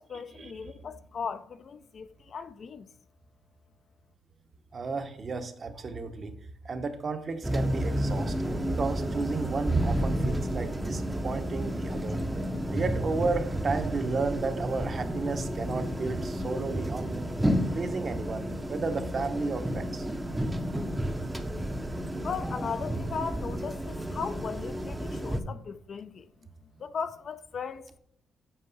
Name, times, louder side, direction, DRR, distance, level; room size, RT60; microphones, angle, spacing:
voice 1, 0.0-2.9 22.2-26.3 26.8-28.0, left 6 dB, 50° left, 0.5 m, -37 dB
voice 2, 4.7-6.4 6.6-12.2 12.7-17.3 17.7-20.1, right 4 dB, 40° right, 0.9 m, -33 dB
sound 1, 7.4-25.4, right 1 dB, 10° right, 0.7 m, -31 dB
7.8 x 4.7 x 4.0 m
cardioid pair, 90°, 0 cm